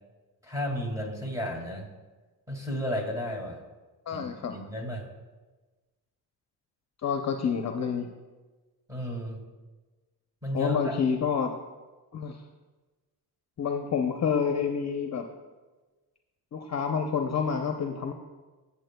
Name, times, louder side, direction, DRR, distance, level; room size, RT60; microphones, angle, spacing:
voice 1, 0.4-1.9 2.5-3.6 4.1-5.1 8.9-9.4 10.4-11.0, equal, 10° right, 0 dB, 2.1 m, -33 dB
voice 2, 4.1-4.5 7.0-8.1 10.5-11.5 12.1-12.4 13.6-15.3 16.5-18.1, left 6 dB, 40° left, 5 dB, 0.6 m, -28 dB
18.0 x 7.0 x 2.2 m, 1.3 s
cardioid pair, 85°, 41 cm